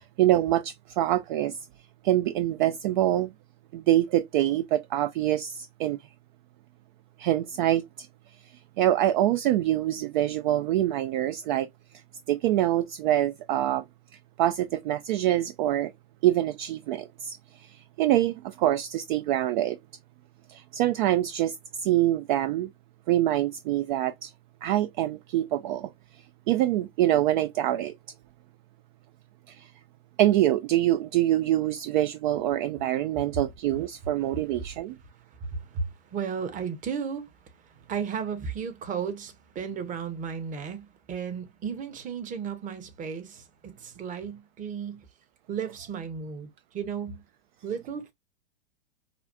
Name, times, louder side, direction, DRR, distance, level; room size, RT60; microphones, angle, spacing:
voice 1, 0.0-1.6 2.0-3.3 3.7-6.0 7.2-8.1 8.8-11.7 12.3-13.8 14.4-15.9 16.2-19.8 20.5-22.7 23.1-24.3 24.6-25.9 26.5-27.9 29.5-29.7 30.2-35.0, right 13 dB, 50° right, 0.4 m, -25 dB
voice 2, 35.4-45.0 45.5-47.2 47.6-48.1, right 6 dB, 25° right, 0.9 m, -34 dB
5.0 x 2.3 x 2.4 m
hypercardioid pair, 100°, 30 cm